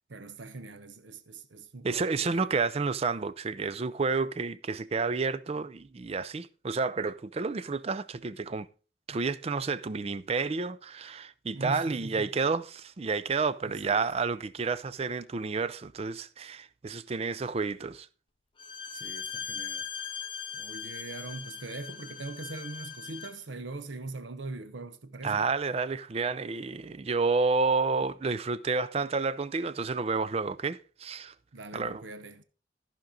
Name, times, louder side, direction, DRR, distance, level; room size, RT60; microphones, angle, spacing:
voice 1, 0.1-2.5 11.5-12.3 13.6-14.1 18.9-19.9 20.5-25.4 31.5-32.4, right 2 dB, 75° right, 0.8 m, -41 dB
voice 2, 1.8-8.7 9.1-18.1 25.2-31.3 31.7-32.0, right 4 dB, 35° right, 0.4 m, -30 dB
Bowed string instrument, 18.6-23.4, left 7 dB, 25° left, 0.6 m, -39 dB
14.0 x 5.2 x 3.8 m
head